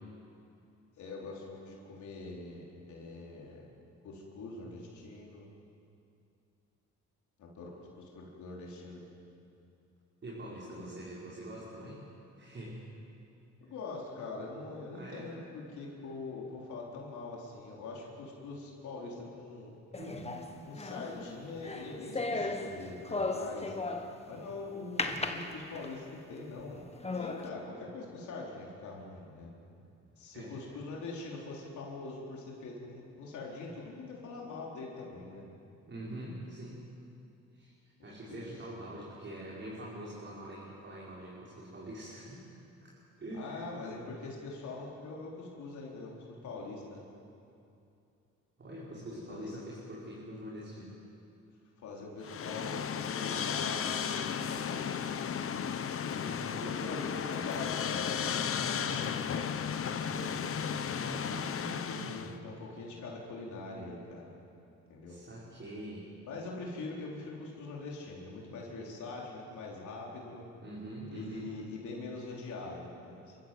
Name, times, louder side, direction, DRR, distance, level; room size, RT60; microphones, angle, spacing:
voice 1, 1.0-3.7 4.0-5.5 7.4-9.0 10.7-11.0 13.6-19.7 20.7-23.8 24.3-26.9 27.1-29.5 30.2-35.4 38.3-38.4 43.3-46.1 46.4-47.0 49.3-49.5 51.8-55.0 56.8-60.8 61.7-64.3 64.9-65.2 66.3-70.5 71.1-73.4, left 3 dB, 75° left, -3 dB, 4.2 m, -43 dB
voice 2, 10.2-12.1 12.4-12.8 14.9-15.3 19.9-20.3 30.3-30.6 35.8-36.8 37.5-37.7 38.0-42.5 42.8-43.7 48.6-51.0 56.2-57.1 61.0-62.3 65.1-66.1 70.6-71.5, right 1 dB, 40° right, -6 dB, 5.3 m, -44 dB
sound 1, 19.9-24.3 25.0-26.1 26.6-26.7 27.0-27.5, left 3 dB, 20° left, 1.7 m, -36 dB
sound 2, 52.2-62.3, left 7 dB, 45° left, 1.0 m, -34 dB
27.5 x 14.5 x 8.0 m, 2.6 s
cardioid pair, 90°, 30 cm